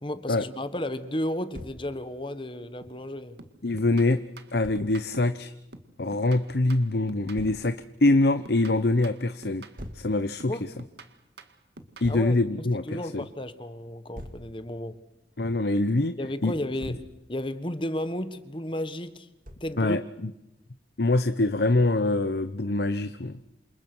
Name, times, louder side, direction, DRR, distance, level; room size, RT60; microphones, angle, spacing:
voice 1, 0.0-3.4 10.5-10.7 12.1-15.0 16.2-19.3 19.6-20.0, left 1 dB, 30° left, 1.4 m, -33 dB
Thump thud, 1.5-1.8 4.6-4.8 7.4-7.6 9.8-10.1 12.0-12.3 14.1-14.5 16.5-17.1 19.4-19.8, equal, 50° right, 2.9 m, -42 dB
sound 1, 2.8-3.1 3.4-5.4 5.7-7.8 8.1-10.1 10.4-12.1, right 2 dB, 70° right, 2.1 m, -48 dB
voice 2, 3.6-4.2 4.5-5.5 6.0-9.6 9.9-10.5 12.0-13.2 15.4-16.2 16.4-16.5 19.8-20.3 21.0-23.4, left 2 dB, 65° left, 0.9 m, -24 dB
28.0 x 27.0 x 6.2 m
head